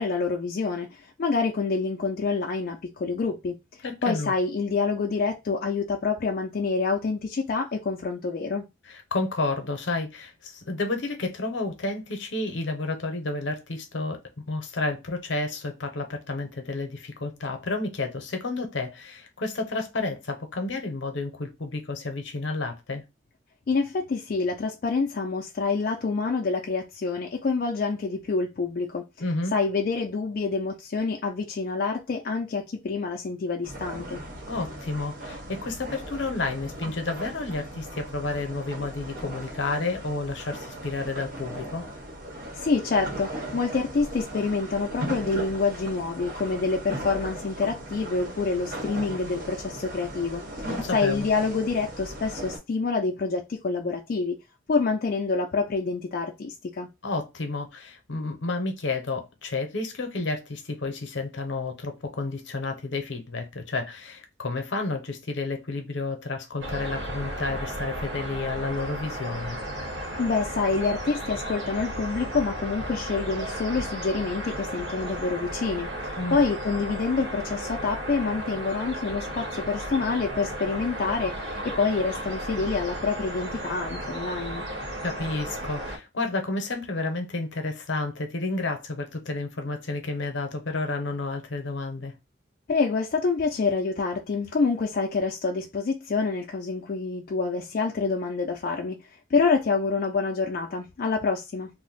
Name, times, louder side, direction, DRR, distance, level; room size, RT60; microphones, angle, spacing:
voice 1, 0.0-3.6 4.0-8.6 23.7-29.0 29.5-34.2 42.5-50.4 50.9-54.4 54.7-56.9 70.2-84.6 92.7-101.7, left 4 dB, 50° left, 0.3 m, -27 dB
voice 2, 3.8-4.3 8.9-14.2 14.5-23.0 29.2-29.5 34.5-41.9 50.6-51.3 57.0-69.6 76.2-76.4 85.0-92.1, left 3 dB, 70° left, 0.7 m, -31 dB
sound 1, 33.6-52.6, right 1 dB, 45° right, 0.9 m, -38 dB
sound 2, 66.6-86.0, right 1 dB, 70° right, 1.0 m, -34 dB
2.6 x 2.0 x 3.9 m
head